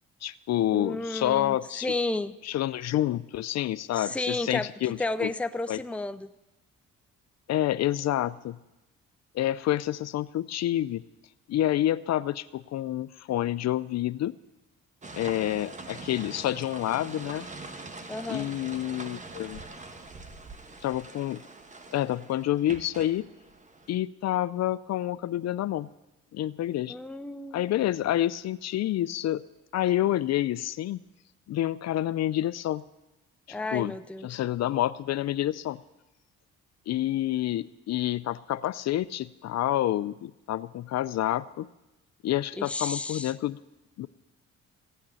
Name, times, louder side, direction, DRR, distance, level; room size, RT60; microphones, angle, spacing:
voice 1, 0.2-1.9 2.4-5.3 5.7-5.8 7.5-8.6 9.3-11.0 11.5-14.4 15.1-17.5 18.3-19.6 20.8-21.4 21.9-23.3 23.9-25.9 26.3-27.0 27.5-29.4 29.7-31.0 31.5-32.8 33.5-33.9 34.2-35.8 36.9-41.7 42.2-43.6 44.0-44.1, left 13 dB, 60° left, 16 dB, 0.5 m, -28 dB
voice 2, 0.7-2.3 3.9-6.3 18.1-18.5 26.9-27.6 33.5-34.3 42.6-43.3, left 2 dB, 5° left, 10 dB, 0.5 m, -32 dB
sound 1, 15.0-23.9, right 3 dB, 25° right, 1.2 m, -43 dB
16.0 x 6.5 x 8.8 m, 0.98 s
cardioid pair, 90°, 30 cm